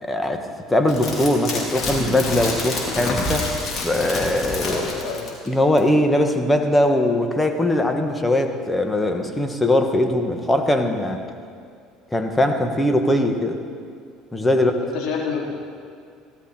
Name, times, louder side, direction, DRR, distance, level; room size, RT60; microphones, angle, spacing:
voice 1, 0.0-3.5 3.8-4.8 5.4-11.3 12.1-13.6 14.3-14.7, left 1 dB, 15° left, 5 dB, 1.5 m, -20 dB
sound 1, 0.9-5.5 5.8-5.9, left 2 dB, 40° left, 3.8 m, -27 dB
voice 2, 4.7-5.2 14.4-14.5 14.8-15.5, left 5 dB, 60° left, -3 dB, 3.7 m, -28 dB
17.5 x 13.0 x 4.5 m, 2.2 s
supercardioid pair, 85°, 0 cm